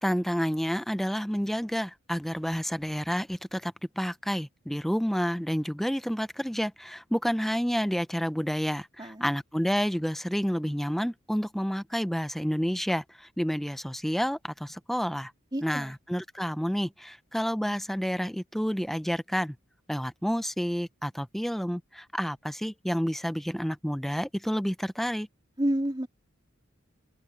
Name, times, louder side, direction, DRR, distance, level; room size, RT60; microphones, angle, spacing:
voice 1, 0.0-15.3 15.6-19.5 19.9-25.3, equal, ahead, 0.6 m, -29 dB
voice 2, 9.0-9.3 15.5-16.0 25.6-26.1, right 1 dB, 20° right, 2.8 m, -29 dB
open air
head